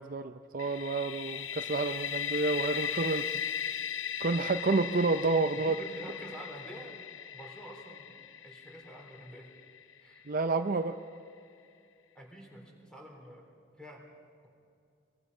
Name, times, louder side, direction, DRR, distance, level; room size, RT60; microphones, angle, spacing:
voice 1, 0.0-3.3 4.2-5.7 10.3-10.9, right 3 dB, 45° right, 8 dB, 0.5 m, -29 dB
sound 1, 0.6-10.3, left 8 dB, 85° left, 0.7 m, -38 dB
voice 2, 5.6-7.0 7.3-9.5 10.0-10.3 12.1-14.0, equal, 5° left, 0 dB, 3.6 m, -48 dB
22.5 x 22.5 x 5.6 m, 2.5 s
head